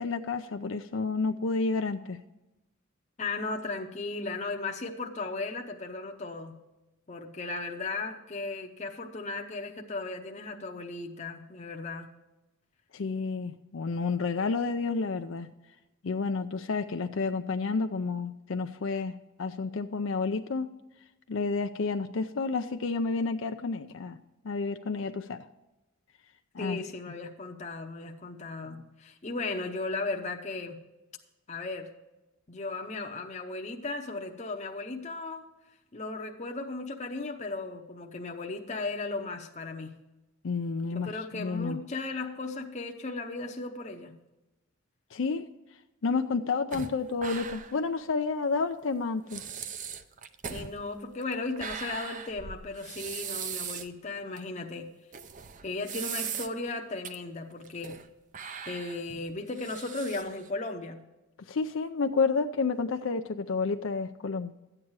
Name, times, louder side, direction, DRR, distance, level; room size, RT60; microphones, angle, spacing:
voice 1, 0.0-2.2 12.9-15.5 16.0-20.7 21.3-24.2 24.4-25.5 26.5-26.8 40.4-41.8 45.1-45.5 46.0-49.4 61.5-64.5, left 4 dB, 65° left, 7 dB, 0.5 m, -30 dB
voice 2, 3.2-6.6 7.1-12.1 26.6-30.8 31.5-31.9 32.5-35.5 35.9-40.0 40.8-44.2 50.5-54.9 55.6-58.0 58.7-61.1, left 3 dB, 35° left, 3 dB, 0.8 m, -36 dB
sound 1, 46.7-47.9 48.2-48.3 48.9-49.0 49.3-53.9 54.4-54.5 55.1-56.7 57.0-57.1 57.6-58.1 58.3-60.5, right 7 dB, 40° right, 0.6 m, -39 dB
12.5 x 8.9 x 4.7 m, 1.0 s
head